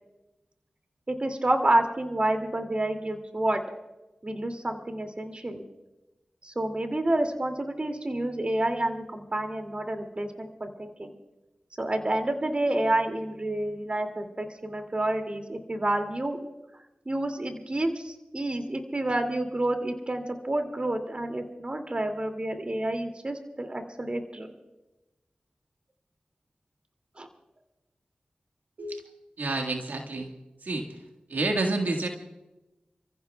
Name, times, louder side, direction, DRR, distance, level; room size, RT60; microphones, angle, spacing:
voice 1, 1.1-3.6 4.2-5.6 6.4-11.2 11.8-16.5 17.1-24.5 27.2-27.3, right 1 dB, 40° right, 5 dB, 2.5 m, -29 dB
voice 2, 29.4-30.3 30.6-31.0 31.3-32.1, right 2 dB, 85° right, 2 dB, 1.7 m, -29 dB
30.0 x 15.0 x 2.4 m, 1.0 s
cardioid pair, 45°, 3 cm